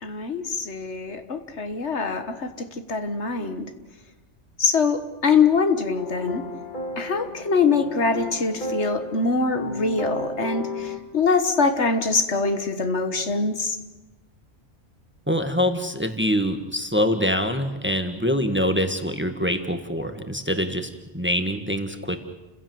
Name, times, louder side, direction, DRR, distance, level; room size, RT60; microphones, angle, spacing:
voice 1, 0.0-3.7 4.6-6.4 7.0-13.8, left 4 dB, 65° left, 8 dB, 1.7 m, -23 dB
sound 1, 6.0-11.0, left 2 dB, 40° left, 1.9 m, -33 dB
voice 2, 15.3-22.2, equal, 10° right, 7 dB, 1.5 m, -24 dB
30.0 x 16.0 x 7.8 m, 1.1 s
omnidirectional pair, 1.2 m